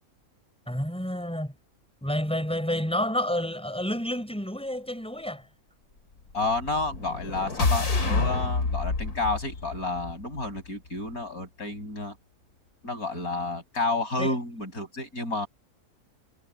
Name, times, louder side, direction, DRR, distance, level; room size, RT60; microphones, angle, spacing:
voice 1, 0.7-1.5 2.0-5.4 14.2-14.4, equal, 5° left, 7.0 m, -29 dB
voice 2, 6.3-12.1 12.8-15.5, left 2 dB, 70° left, 7.6 m, -30 dB
sound 1, 6.5-10.7, left 3 dB, 90° left, 3.2 m, -28 dB
omnidirectional pair, 1.6 m